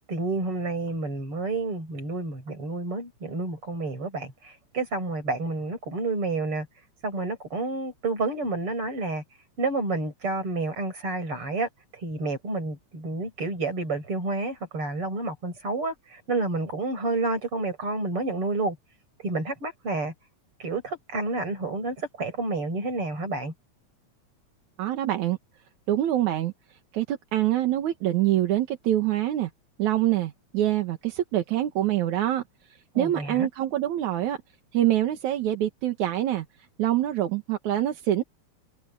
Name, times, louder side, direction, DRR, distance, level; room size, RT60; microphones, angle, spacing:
voice 1, 0.1-6.7 7.0-9.2 9.6-18.8 19.2-20.1 20.6-23.5 32.9-33.5, right 3 dB, 45° right, 7.7 m, -29 dB
voice 2, 24.8-25.4 25.9-26.5 26.9-29.5 29.8-32.4 33.0-34.4 34.7-36.5 36.8-38.2, right 13 dB, 80° right, 2.8 m, -25 dB
omnidirectional pair, 3.3 m